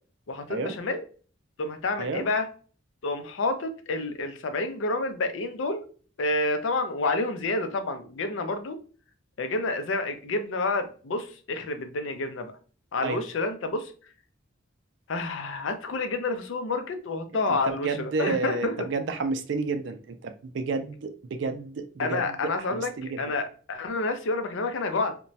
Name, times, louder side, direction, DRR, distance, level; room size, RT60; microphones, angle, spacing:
voice 1, 0.3-1.0 1.6-2.5 3.0-5.8 6.2-8.8 9.4-12.5 12.9-13.9 15.1-18.9 22.0-25.2, left 3 dB, 75° left, 0.5 m, -29 dB
voice 2, 17.7-23.2, right 4 dB, 65° right, 0.4 m, -31 dB
3.0 x 2.2 x 2.6 m
head